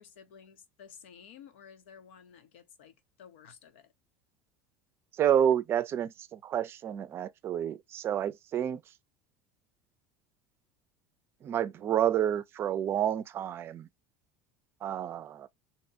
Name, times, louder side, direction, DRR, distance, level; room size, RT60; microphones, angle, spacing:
voice 1, 0.0-3.9, left 7 dB, 85° left, 0.8 m, -53 dB
voice 2, 5.2-8.8 11.4-13.9 14.8-15.5, right 10 dB, 40° right, 0.4 m, -29 dB
2.8 x 2.2 x 2.7 m
supercardioid pair, 100°, 6 cm